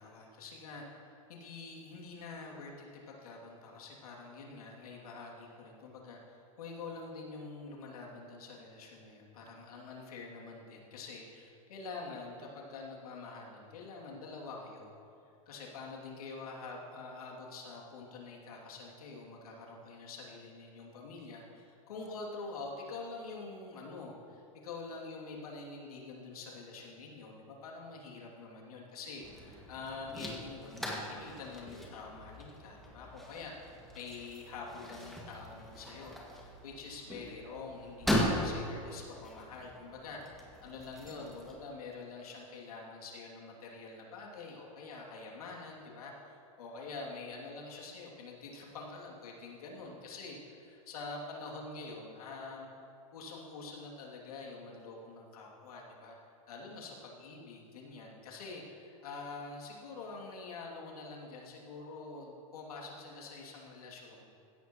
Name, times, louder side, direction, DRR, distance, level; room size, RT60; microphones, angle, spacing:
voice 1, 0.0-14.9 15.5-52.7 53.1-56.2 56.5-64.3, left 3 dB, 80° left, -3 dB, 2.6 m, -46 dB
sound 1, 29.2-41.5, equal, ahead, 1.9 m, -39 dB
16.0 x 10.5 x 3.0 m, 2.7 s
hypercardioid pair, 130°, 19 cm